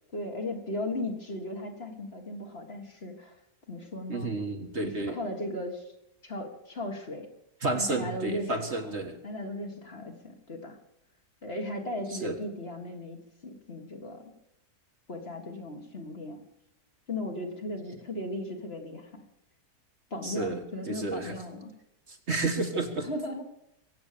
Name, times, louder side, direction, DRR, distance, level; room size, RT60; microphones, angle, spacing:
voice 1, 0.1-3.4 3.7-4.3 4.8-5.9 6.2-7.3 7.7-8.9 9.2-10.8 11.4-14.2 15.1-16.4 17.1-19.1 20.1-21.7 23.0-23.4, left 1 dB, 40° left, 3 dB, 2.2 m, -37 dB
voice 2, 4.1-5.2 7.6-9.2 12.2-12.3 20.2-21.3 22.1-23.1, right 2 dB, 45° right, 4 dB, 1.8 m, -31 dB
23.5 x 8.3 x 6.9 m, 0.84 s
omnidirectional pair, 1.6 m